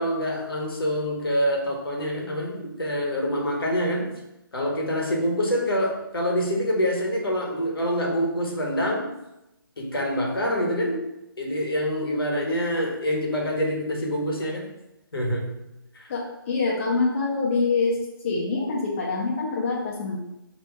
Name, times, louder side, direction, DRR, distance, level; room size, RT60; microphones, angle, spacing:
voice 1, 0.0-4.1 4.5-9.1 9.8-11.0 11.4-14.7 15.1-15.5 15.9-16.1, equal, 80° left, -1 dB, 1.3 m, -26 dB
voice 2, 16.5-18.0 18.2-20.2, left 4 dB, 35° left, -3 dB, 0.7 m, -25 dB
3.4 x 3.0 x 4.6 m, 0.92 s
figure-of-eight pair, 155°, 12 cm